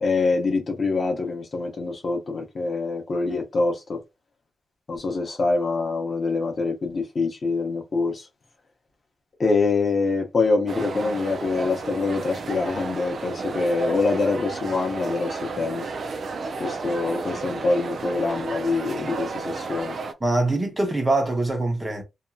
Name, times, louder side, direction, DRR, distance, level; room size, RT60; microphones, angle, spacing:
voice 1, 0.0-4.0 4.9-8.3 9.4-15.9 16.6-20.0, left 3 dB, 35° left, 0.6 m, -25 dB
sound 1, 10.7-20.1, right 4 dB, 45° right, 0.4 m, -32 dB
voice 2, 20.2-22.0, right 2 dB, 15° right, 0.7 m, -23 dB
2.8 x 2.5 x 2.3 m
wide cardioid pair, 180°, 0 cm